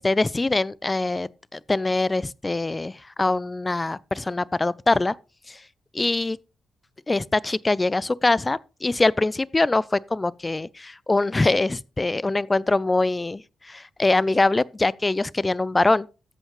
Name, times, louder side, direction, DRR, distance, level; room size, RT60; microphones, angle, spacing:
voice 1, 0.0-2.9 3.2-5.1 5.5-5.6 5.9-6.4 7.1-13.4 13.7-16.1, left 2 dB, 25° left, 0.4 m, -23 dB
14.0 x 7.9 x 3.0 m
hypercardioid pair, 40°, 0 cm